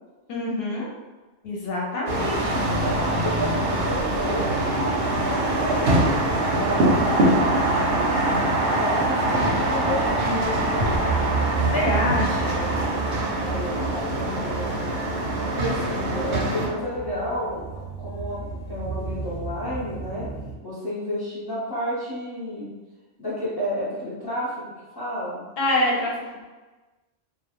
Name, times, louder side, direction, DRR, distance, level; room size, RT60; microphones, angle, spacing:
voice 1, 0.3-0.9 1.4-2.7 11.7-12.7 25.6-26.1, left 1 dB, 65° left, -3 dB, 0.7 m, -25 dB
sound 1, 2.1-16.7, right 1 dB, 65° right, 0.7 m, -23 dB
voice 2, 2.6-4.5 5.0-7.4 8.6-11.0 13.3-14.7 15.5-17.6 18.0-20.3 20.6-22.7 23.2-25.4, left 1 dB, 25° left, -9 dB, 0.6 m, -31 dB
Brass instrument, 9.6-17.5, left 3 dB, 90° right, 0.9 m, -39 dB
sound 2, 10.8-20.5, right 5 dB, ahead, 0.8 m, -33 dB
2.3 x 2.0 x 2.9 m, 1.2 s
omnidirectional pair, 1.2 m